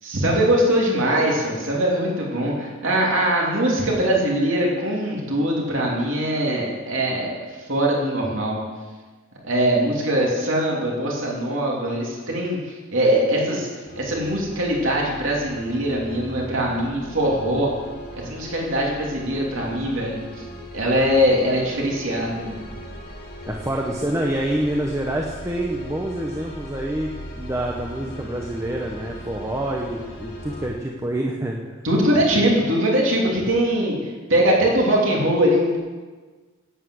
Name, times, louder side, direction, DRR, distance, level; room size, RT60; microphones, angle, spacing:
voice 1, 0.0-8.6 9.4-17.7 18.1-20.4 20.7-22.6 31.8-35.8, right 1 dB, 70° right, -2 dB, 3.0 m, -22 dB
sound 1, 13.8-30.7, equal, 50° left, 2.1 m, -38 dB
voice 2, 23.5-31.6, right 1 dB, 15° right, -1 dB, 1.0 m, -27 dB
11.0 x 9.3 x 7.9 m, 1.4 s
head